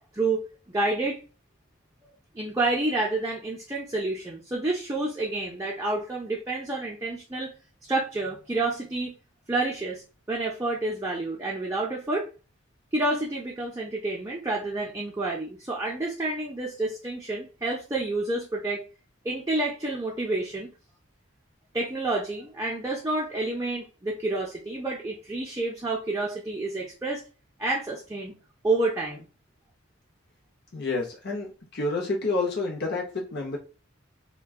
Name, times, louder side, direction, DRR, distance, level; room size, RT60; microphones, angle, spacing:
voice 1, 0.7-1.2 2.3-7.5 7.9-9.1 9.5-10.0 10.3-12.3 12.9-18.8 19.2-20.7 21.7-27.2 27.6-28.4 28.6-29.3, right 2 dB, 15° right, -3 dB, 0.5 m, -29 dB
voice 2, 30.7-33.6, left 3 dB, 55° left, -1 dB, 0.7 m, -29 dB
2.4 x 2.2 x 3.5 m, 0.34 s
head